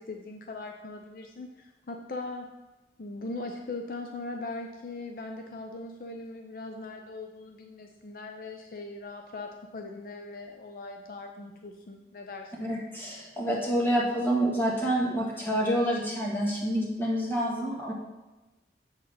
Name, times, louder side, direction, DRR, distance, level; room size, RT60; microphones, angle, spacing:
voice 1, 0.0-2.5 3.0-12.7, left 2 dB, 55° left, 3 dB, 0.5 m, -40 dB
voice 2, 12.6-17.9, equal, 10° left, -5 dB, 1.6 m, -28 dB
7.1 x 3.9 x 6.3 m, 1.1 s
head